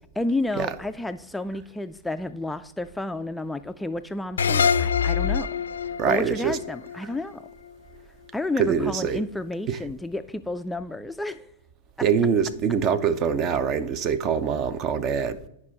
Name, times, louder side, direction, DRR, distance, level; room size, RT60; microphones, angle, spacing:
voice 1, 0.2-5.5 6.0-7.4 8.3-11.5, left 2 dB, 5° left, 0.3 m, -31 dB
sound 1, 4.4-7.7, left 6 dB, 80° left, 0.4 m, -25 dB
voice 2, 6.0-6.6 8.6-9.2 9.7-9.8 12.0-15.5, right 7 dB, 40° right, 0.6 m, -24 dB
9.6 x 5.3 x 4.5 m
hypercardioid pair, 100°, 0 cm